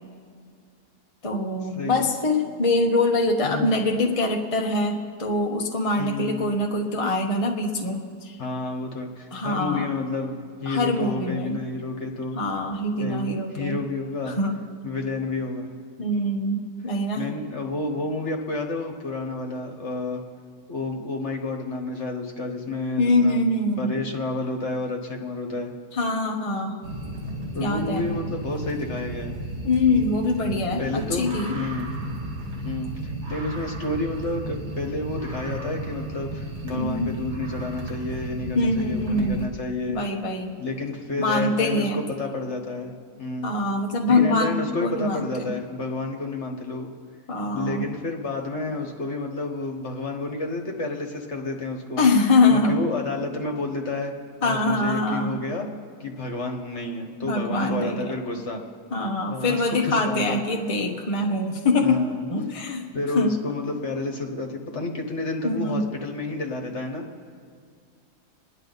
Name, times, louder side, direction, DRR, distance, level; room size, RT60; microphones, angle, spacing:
voice 1, 1.2-8.4 9.3-9.9 10.7-11.6 12.3-13.8 14.3-14.6 16.0-17.3 23.0-23.9 25.9-26.8 27.6-28.1 29.6-31.5 36.7-37.2 38.5-39.5 39.9-40.6 41.2-42.0 43.4-45.5 47.3-47.9 52.0-52.8 54.4-55.4 57.2-58.0 58.9-62.0 62.3-62.8 63.1-63.3 65.4-65.8, left 2 dB, 25° left, 1 dB, 1.1 m, -24 dB
voice 2, 1.7-2.1 3.4-3.8 6.0-6.5 8.4-12.4 13.0-14.4 14.8-15.7 17.1-20.2 20.7-23.4 23.8-25.7 27.5-29.4 30.8-31.3 31.5-31.9 32.6-32.9 33.3-40.0 40.6-42.9 43.2-43.5 44.1-46.9 47.5-52.0 52.5-54.1 54.4-55.7 56.0-58.6 59.3-60.4 61.8-62.2 62.9-67.1, left 3 dB, 45° left, 2 dB, 1.7 m, -30 dB
sound 1, 26.8-39.5, right 1 dB, 80° right, 2.8 m, -34 dB
28.0 x 10.5 x 4.1 m, 2.2 s
omnidirectional pair, 1.7 m